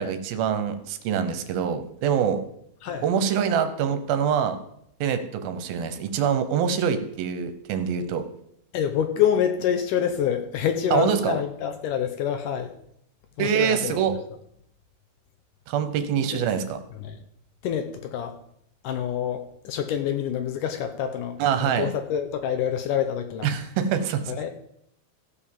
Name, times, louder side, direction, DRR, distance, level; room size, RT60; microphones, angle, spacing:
voice 1, 0.0-2.4 3.0-4.6 5.0-8.2 10.9-11.4 13.4-14.1 15.7-16.8 21.4-21.9 23.4-24.2, right 8 dB, 80° right, 9 dB, 2.8 m, -25 dB
voice 2, 8.7-12.7 13.4-14.0 16.3-16.5 17.0-17.2 17.6-18.4 18.8-23.5 24.3-24.5, left 9 dB, 75° left, 6 dB, 2.0 m, -27 dB
15.0 x 5.2 x 7.1 m, 0.74 s
omnidirectional pair, 4.3 m